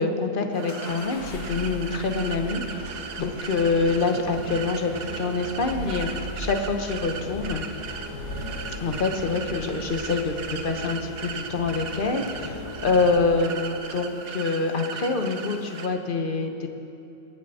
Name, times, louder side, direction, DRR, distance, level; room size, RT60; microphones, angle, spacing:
voice 1, 0.0-6.1 6.4-7.6 8.8-16.7, left 3 dB, 35° left, 5 dB, 1.1 m, -26 dB
sound 1, 0.5-15.9, right 6 dB, 85° right, 1.5 m, -37 dB
sound 2, 0.7-13.5, left 1 dB, 55° left, 1.9 m, -40 dB
sound 3, 2.1-13.3, left 3 dB, 70° left, 1.8 m, -41 dB
21.0 x 7.8 x 5.6 m, 2.9 s
omnidirectional pair, 1.7 m